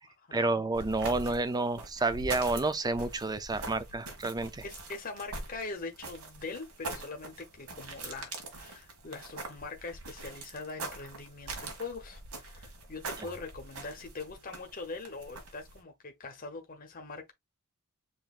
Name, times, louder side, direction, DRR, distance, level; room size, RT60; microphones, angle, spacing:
voice 1, 0.3-4.6, right 2 dB, 20° right, 0.5 m, -30 dB
sound 1, 0.7-15.8, right 3 dB, 80° right, 1.6 m, -43 dB
voice 2, 4.6-17.3, left 3 dB, 40° left, 0.9 m, -42 dB
7.1 x 3.0 x 2.4 m
head